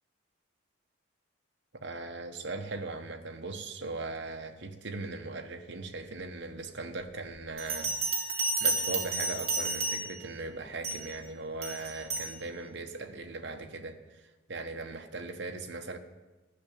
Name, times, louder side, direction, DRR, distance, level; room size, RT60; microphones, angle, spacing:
voice 1, 1.7-8.2 8.6-16.0, right 3 dB, 60° right, 5 dB, 1.0 m, -39 dB
Bell, 7.6-10.3 10.8-11.1 11.6-12.3, right 2 dB, 30° right, 1.6 m, -31 dB
12.0 x 6.7 x 8.6 m, 1.2 s
head